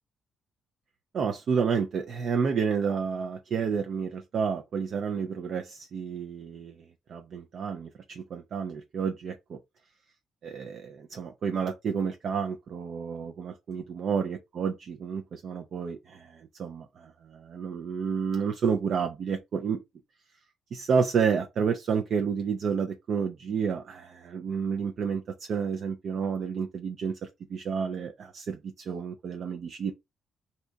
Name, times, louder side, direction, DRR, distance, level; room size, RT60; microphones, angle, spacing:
voice 1, 1.1-9.6 10.4-19.8 20.7-29.9, right 6 dB, 60° right, 0.4 m, -30 dB
2.7 x 2.2 x 3.8 m
cardioid pair, 90°, 0 cm